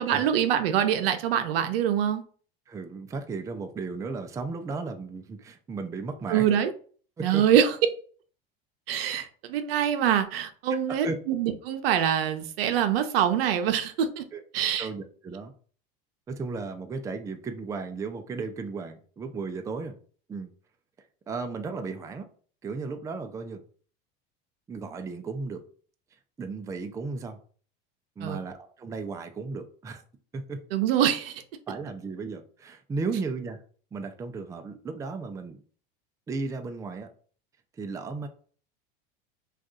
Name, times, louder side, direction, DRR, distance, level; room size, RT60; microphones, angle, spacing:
voice 1, 0.0-2.2 6.3-6.7 7.2-7.7 8.9-14.2 14.5-14.9 28.2-28.4 30.7-31.4, right 9 dB, 80° right, 0.6 m, -24 dB
voice 2, 2.7-6.5 7.2-7.4 10.9-11.1 14.3-14.4 14.8-15.5 16.3-19.9 20.3-20.5 21.3-22.3 22.6-23.6 24.7-25.6 26.4-27.4 28.2-30.0 30.3-30.6 31.7-33.6 33.9-35.6 36.3-37.1 37.8-38.3, right 4 dB, 10° right, 0.3 m, -35 dB
2.6 x 2.4 x 3.6 m
supercardioid pair, 100°, 29 cm